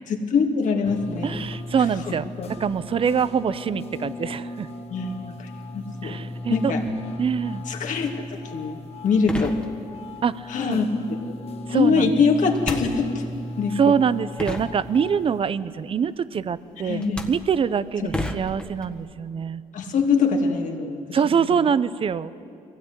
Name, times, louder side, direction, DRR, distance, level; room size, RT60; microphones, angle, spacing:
voice 1, 0.1-1.4 2.1-2.5 4.9-6.2 6.5-6.8 7.7-9.6 10.5-11.2 11.7-13.3 13.6-14.0 16.8-17.2 18.0-18.2 19.7-21.2 21.5-21.6, left 5 dB, 65° left, 2 dB, 2.7 m, -24 dB
sound 1, 0.8-15.4, left 2 dB, 45° left, 1.8 m, -37 dB
voice 2, 1.2-4.7 6.0-6.7 7.2-7.7 10.2-10.8 11.7-12.1 13.8-19.6 21.1-22.3, right 7 dB, 40° right, 16 dB, 0.7 m, -24 dB
sound 2, 8.9-9.0 9.3-10.2 12.5-13.4 14.1-14.2 14.4-15.3 16.4-16.6 17.0-19.1, left 1 dB, 5° left, 1.7 m, -32 dB
23.0 x 16.5 x 9.8 m, 2.5 s
cardioid pair, 115°, 14 cm